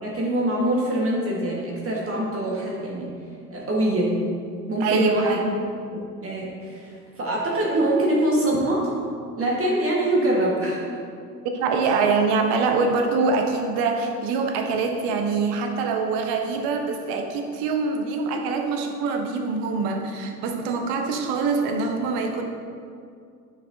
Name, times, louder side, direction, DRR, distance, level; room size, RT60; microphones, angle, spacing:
voice 1, 0.0-3.1 3.5-4.2 4.7-5.5 5.9-8.9 9.4-10.8, right 1 dB, 30° right, -4 dB, 1.6 m, -24 dB
voice 2, 4.8-5.5 11.5-22.4, right 4 dB, 50° right, 4 dB, 1.1 m, -24 dB
9.6 x 5.6 x 2.7 m, 2.3 s
hypercardioid pair, 80°, 47 cm